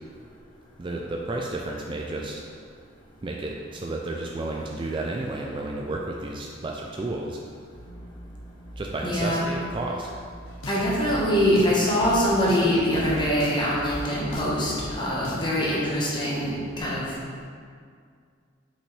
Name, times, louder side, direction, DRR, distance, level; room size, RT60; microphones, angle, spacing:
voice 1, 0.8-2.4 3.2-7.4 8.8-10.1, right 2 dB, 25° right, -1 dB, 0.3 m, -32 dB
sound 1, 7.7-14.2, equal, 45° left, 1.1 m, -43 dB
voice 2, 9.0-9.4 10.7-17.1, equal, 25° left, -6 dB, 1.3 m, -24 dB
sound 2, 10.5-15.7, left 1 dB, 80° left, 0.8 m, -39 dB
5.9 x 5.3 x 3.3 m, 2.1 s
head